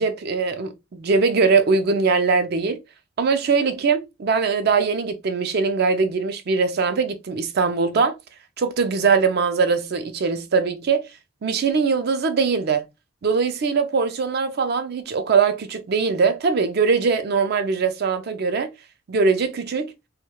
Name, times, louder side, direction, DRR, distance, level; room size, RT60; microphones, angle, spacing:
voice 1, 0.0-2.8 3.2-8.2 8.6-11.1 11.4-12.8 13.2-18.7 19.1-19.9, right 5 dB, 55° right, 0.4 m, -21 dB
2.2 x 2.2 x 3.0 m
head